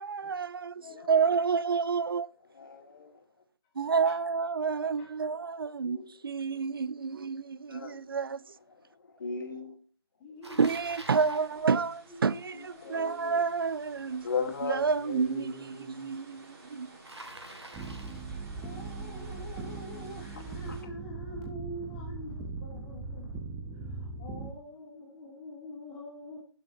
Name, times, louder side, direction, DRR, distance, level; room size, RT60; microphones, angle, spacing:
voice 1, 0.0-0.5 1.1-2.3 3.8-8.4 10.6-14.3 14.6-16.9, right 5 dB, 60° right, 0.5 m, -29 dB
voice 2, 0.8-1.4 4.0-4.2 5.0-5.1 10.2-13.1 18.5-23.4 23.8-26.4, equal, 20° left, 2.7 m, -46 dB
voice 3, 2.5-3.2 5.3-5.4 5.8-6.3 7.7-8.1 8.9-9.7 12.5-13.4 14.2-16.1 20.7-20.8, left 5 dB, 45° left, 2.0 m, -38 dB
Bicycle, 10.4-11.5 17.0-18.3, right 1 dB, 85° right, 2.3 m, -46 dB
sound 1, 11.2-20.8, right 2 dB, 40° right, 6.0 m, -54 dB
sound 2, 17.7-24.5, right 3 dB, 10° right, 0.8 m, -40 dB
16.5 x 6.5 x 2.9 m
figure-of-eight pair, 150°, 14 cm